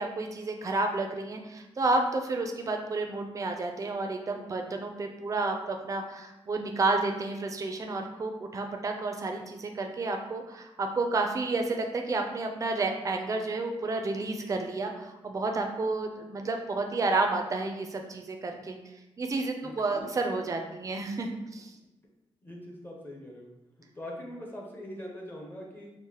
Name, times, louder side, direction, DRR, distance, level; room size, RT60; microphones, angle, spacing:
voice 1, 0.0-18.8 19.2-21.7, right 3 dB, 30° right, 3 dB, 0.4 m, -31 dB
voice 2, 19.6-20.1 22.4-23.5 23.8-25.9, left 1 dB, 20° left, -1 dB, 0.6 m, -42 dB
4.6 x 2.1 x 2.8 m, 0.96 s
wide cardioid pair, 170°, 11 cm